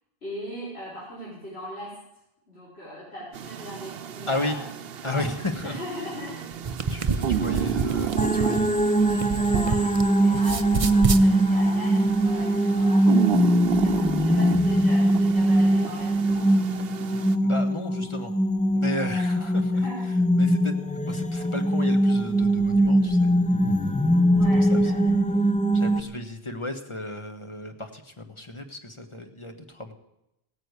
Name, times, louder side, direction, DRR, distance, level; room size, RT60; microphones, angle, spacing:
voice 1, 0.2-1.9 2.5-4.6 5.0-5.3 5.6-6.4 6.8-7.7 8.0-12.0 12.2-16.7 19.1-20.0 24.3-25.1, equal, 85° left, -8 dB, 5.1 m, -40 dB
sound 1, 3.3-17.4, right 9 dB, 70° right, 0.9 m, -32 dB
voice 2, 5.0-5.8 6.9-8.7 17.4-18.3 18.7-19.8 20.4-23.3 24.7-24.9 25.7-29.9, left 2 dB, 30° left, 5 dB, 1.3 m, -34 dB
sound 2, 6.5-10.0 10.3-11.3, right 4 dB, 40° right, 0.7 m, -27 dB
sound 3, 8.2-26.0, right 1 dB, 10° left, 0.4 m, -22 dB
16.5 x 9.7 x 8.2 m, 0.86 s
omnidirectional pair, 1.0 m